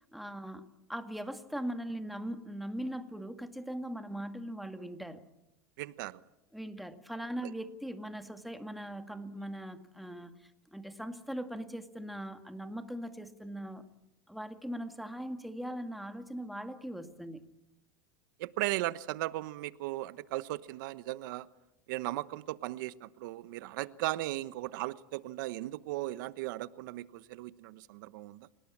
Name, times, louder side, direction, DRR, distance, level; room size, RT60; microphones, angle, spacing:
voice 1, 0.1-5.3 6.5-13.9 14.3-17.5, right 1 dB, ahead, 7 dB, 2.0 m, -40 dB
voice 2, 5.8-6.2 18.4-21.5 21.9-28.5, right 17 dB, 75° right, 15 dB, 1.1 m, -37 dB
28.5 x 18.5 x 8.7 m, 0.91 s
supercardioid pair, 125°, 11 cm